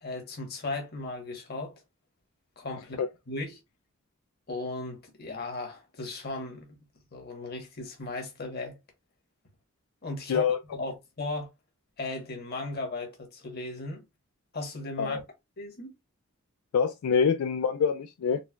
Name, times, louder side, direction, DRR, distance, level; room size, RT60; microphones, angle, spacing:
voice 1, 0.0-1.8 2.6-3.0 3.3-3.5 4.5-6.7 7.1-8.8 10.0-11.5 12.0-14.0 14.5-15.2 15.6-15.9, left 2 dB, 45° left, 1.1 m, -36 dB
voice 2, 16.7-18.4, left 6 dB, 80° left, 0.3 m, -25 dB
3.9 x 2.1 x 2.2 m
head